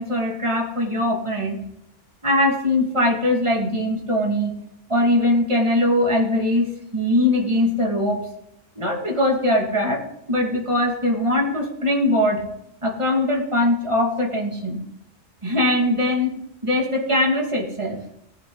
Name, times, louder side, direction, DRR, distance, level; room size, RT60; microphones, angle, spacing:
voice 1, 0.0-1.6 2.2-4.6 4.9-6.7 6.9-8.3 8.8-10.0 10.3-12.4 12.8-14.8 15.4-16.3 16.6-18.0, left 1 dB, 25° right, -1 dB, 2.5 m, -21 dB
18.5 x 7.4 x 4.0 m, 0.79 s
omnidirectional pair, 1.3 m